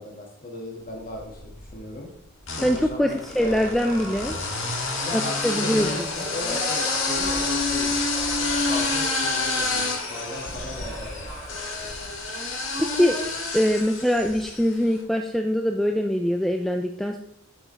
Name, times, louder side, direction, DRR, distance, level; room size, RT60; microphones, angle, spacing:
voice 1, 0.0-2.1 2.6-3.7 5.0-7.9 8.4-11.5, left 2 dB, 40° left, 0 dB, 1.8 m, -37 dB
sound 1, 1.1-1.7 2.4-14.7, left 3 dB, 65° left, 1.6 m, -28 dB
voice 2, 2.6-4.4 4.7-4.8 5.1-6.1 12.4-12.5 12.8-13.2 13.5-17.2, equal, ahead, 3 dB, 0.3 m, -23 dB
sound 2, 3.4-12.0, equal, 25° left, 2.5 m, -40 dB
8.7 x 6.9 x 3.3 m, 0.76 s
head